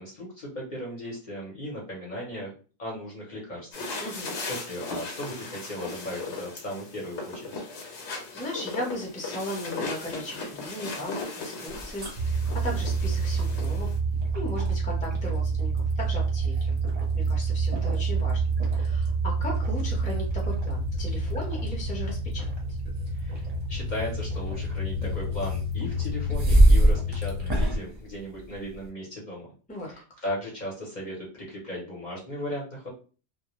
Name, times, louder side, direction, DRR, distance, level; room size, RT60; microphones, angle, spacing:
voice 1, 0.0-2.5 2.8-7.5 23.1-23.4 23.7-29.5 29.9-32.9, left 1 dB, 45° left, -4 dB, 0.8 m, -37 dB
sound 1, 3.7-14.0, left 3 dB, 75° left, 1.0 m, -37 dB
voice 2, 4.0-4.3 8.0-13.9 14.3-16.8 17.1-22.5 29.7-29.9, left 1 dB, 10° left, -2 dB, 0.6 m, -37 dB
sound 2, 11.7-28.9, right 1 dB, 35° right, 0.7 m, -29 dB
sound 3, 12.2-27.8, right 3 dB, 60° right, 0.4 m, -28 dB
2.1 x 2.1 x 2.9 m, 0.37 s
omnidirectional pair, 1.2 m